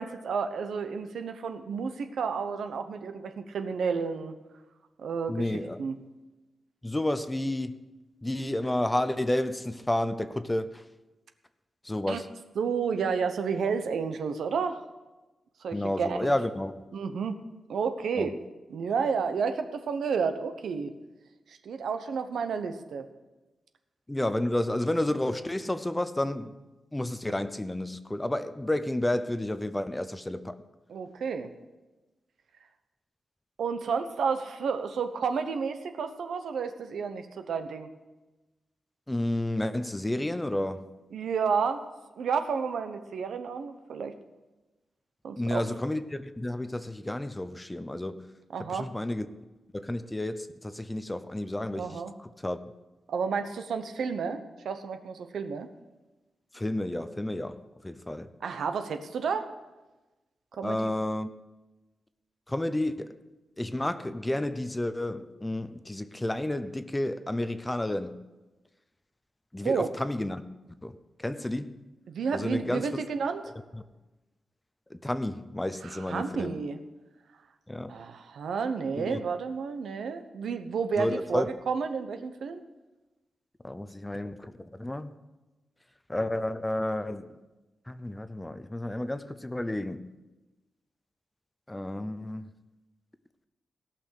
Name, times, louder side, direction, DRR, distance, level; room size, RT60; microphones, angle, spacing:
voice 1, 0.0-4.3 5.0-5.5 5.8-5.9 12.1-12.2 12.6-14.8 15.6-16.3 16.9-17.4 17.7-18.4 18.7-20.9 21.5-23.0 30.9-31.5 33.6-37.9 41.1-41.8 42.2-44.1 45.2-45.6 48.5-48.9 51.7-52.1 53.1-55.7 58.4-59.5 60.5-60.9 69.6-69.9 72.1-73.4 75.8-76.8 77.9-82.6, right 5 dB, 85° right, 1.0 m, -31 dB
voice 2, 5.3-5.8 6.8-7.8 8.2-10.8 11.8-12.3 15.7-16.8 18.2-18.3 24.1-26.6 26.9-30.6 39.1-40.9 45.4-48.3 48.7-49.3 49.7-52.6 56.5-58.3 60.6-61.3 62.5-63.2 63.6-68.1 69.5-70.4 70.8-71.7 72.3-73.0 73.7-73.8 74.9-76.6 77.7-77.9 79.0-79.2 81.0-81.5 83.6-85.1 86.1-87.4 87.9-90.0 91.7-92.5, left 1 dB, 10° left, 0.6 m, -31 dB
17.5 x 6.0 x 6.5 m
wide cardioid pair, 115°, 0 cm